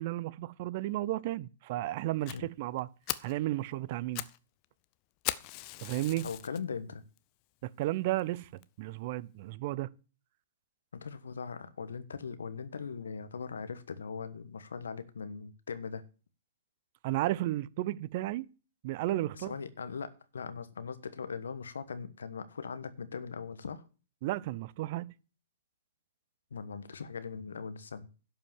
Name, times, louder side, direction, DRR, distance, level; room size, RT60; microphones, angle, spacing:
voice 1, 0.0-2.9 3.2-4.2 5.8-6.3 7.6-8.5 8.8-9.9 17.0-18.5 18.8-19.5 24.2-25.1, right 16 dB, 50° right, 0.6 m, -33 dB
Fire, 2.3-2.4 2.8-2.9 3.1-3.4 3.9-4.4 4.6-4.7 5.2-6.6 7.2-7.3 7.8-7.9 8.2-8.3 8.6-8.7, left 18 dB, 40° left, 0.7 m, -38 dB
voice 2, 6.2-7.0 10.9-16.0 19.3-23.8 26.5-28.1, left 5 dB, 75° left, 1.3 m, -40 dB
11.5 x 5.5 x 7.4 m
hypercardioid pair, 120°, 0 cm